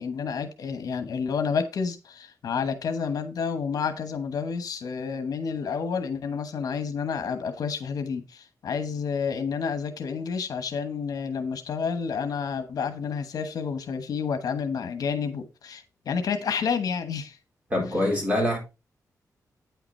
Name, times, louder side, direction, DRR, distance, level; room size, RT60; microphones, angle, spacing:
voice 1, 0.0-17.4 17.9-18.0 18.3-18.4, left 6 dB, 70° left, 1.1 m, -30 dB
voice 2, 17.7-18.6, left 1 dB, 20° right, 4.3 m, -24 dB
9.2 x 5.8 x 4.3 m
wide cardioid pair, 140°, 7 cm